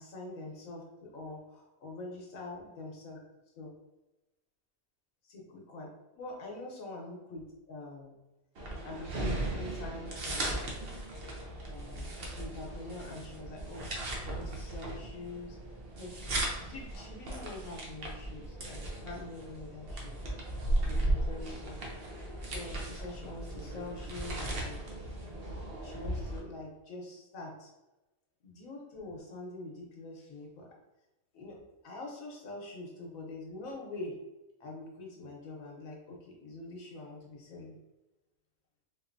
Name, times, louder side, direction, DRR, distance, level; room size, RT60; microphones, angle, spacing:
voice 1, 0.0-3.2 3.6-3.7 5.3-5.9 6.1-8.2 8.8-10.8 11.7-13.9 14.2-15.6 16.0-20.2 20.8-21.8 22.4-25.1 25.8-27.7 28.4-30.7 31.3-34.2 34.6-37.7, left 2 dB, 75° left, -1 dB, 1.3 m, -45 dB
sound 1, 8.6-26.4, right 1 dB, 50° right, 0.8 m, -37 dB
4.0 x 2.6 x 2.5 m, 1.0 s
omnidirectional pair, 1.5 m